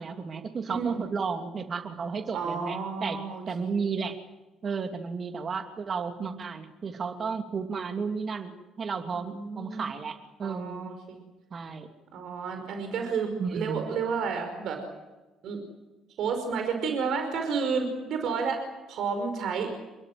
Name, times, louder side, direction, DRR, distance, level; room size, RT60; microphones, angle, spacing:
voice 1, 0.0-3.2 3.5-4.2 4.6-10.9 11.5-11.9 13.4-13.9, right 5 dB, 45° right, 6 dB, 2.8 m, -33 dB
voice 2, 0.7-1.1 2.3-3.8 6.2-6.4 9.1-9.9 10.4-11.2 12.1-14.8 15.4-15.6 16.2-18.6 18.9-19.7, right 5 dB, 60° right, 5 dB, 5.3 m, -31 dB
29.0 x 22.0 x 7.8 m, 1.1 s
hypercardioid pair, 50°, 0 cm